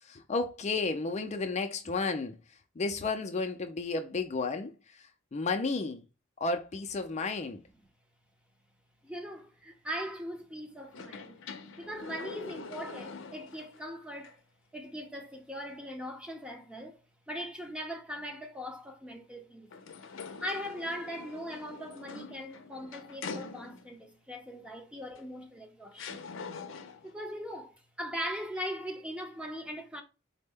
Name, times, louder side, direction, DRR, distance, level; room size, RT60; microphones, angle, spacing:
voice 1, 0.0-2.4 2.8-6.0 6.4-7.6, left 3 dB, 35° left, 0.4 m, -32 dB
voice 2, 9.0-11.4 11.8-14.4 14.7-17.0 17.3-19.7 20.4-26.2 27.0-30.0, equal, 5° right, 0.6 m, -40 dB
sound 1, 10.9-13.8 14.2-14.3 19.7-24.0 25.2-25.3 26.0-27.1, left 4 dB, 85° left, 0.6 m, -44 dB
4.1 x 2.1 x 3.4 m
head